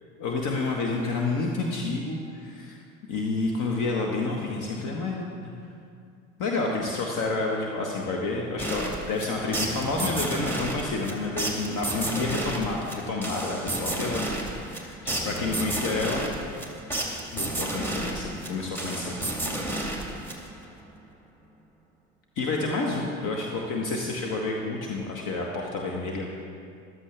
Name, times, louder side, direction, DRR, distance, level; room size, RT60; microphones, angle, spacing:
voice 1, 0.2-2.8 3.1-5.5 6.4-14.3 14.7-16.3 17.3-19.2 22.3-26.3, left 3 dB, 45° left, 0 dB, 1.5 m, -29 dB
sound 1, 8.6-20.7, right 1 dB, 5° left, 2.3 m, -32 dB
14.0 x 13.0 x 3.4 m, 2.3 s
figure-of-eight pair, 65°, 41 cm